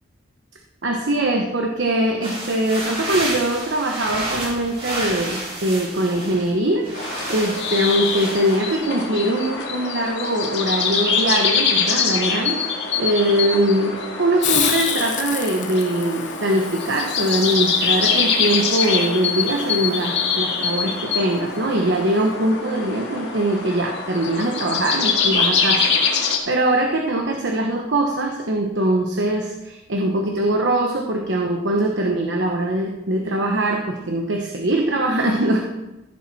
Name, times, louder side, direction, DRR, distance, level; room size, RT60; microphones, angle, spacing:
voice 1, 0.8-35.7, right 1 dB, 75° right, 2 dB, 1.1 m, -22 dB
sound 1, 2.2-6.5 6.8-9.0, right 1 dB, 30° right, 3.4 m, -30 dB
sound 2, 6.9-26.4, left 5 dB, 65° left, 2.0 m, -24 dB
Hiss, 14.4-20.0, left 9 dB, 40° left, 0.9 m, -30 dB
15.0 x 7.6 x 4.2 m, 1.0 s
head